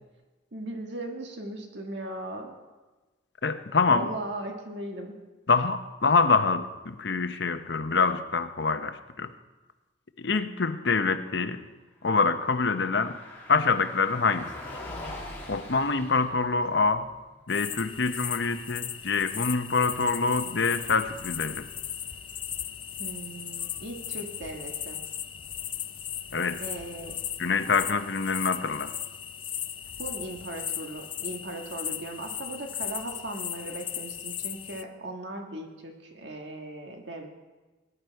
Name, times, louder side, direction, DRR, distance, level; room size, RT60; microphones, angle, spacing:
voice 1, 0.5-2.5 3.9-5.2 23.0-25.0 26.6-27.2 30.0-37.3, right 1 dB, 65° right, 2 dB, 1.6 m, -38 dB
voice 2, 3.4-4.1 5.5-9.3 10.2-11.6 12.0-13.2 13.5-14.5 15.5-17.1 17.5-21.7 26.3-26.6 27.4-28.9, left 4 dB, 65° left, 9 dB, 0.8 m, -25 dB
Car passing by, 12.0-28.1, left 1 dB, 10° left, 2.7 m, -47 dB
sound 1, 17.5-34.8, left 10 dB, 25° left, 0.4 m, -37 dB
20.0 x 11.0 x 4.6 m, 1.2 s
head